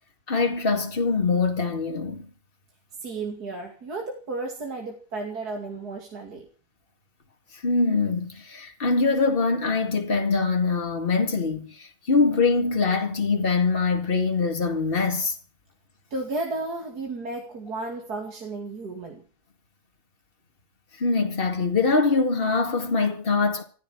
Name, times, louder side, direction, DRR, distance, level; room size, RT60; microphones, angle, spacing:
voice 1, 0.3-2.3 7.6-15.4 21.0-23.6, left 4 dB, 35° left, 2.3 m, -23 dB
voice 2, 3.0-6.5 16.1-19.2, right 3 dB, 65° right, 3.0 m, -33 dB
15.0 x 14.5 x 6.3 m
omnidirectional pair, 1.8 m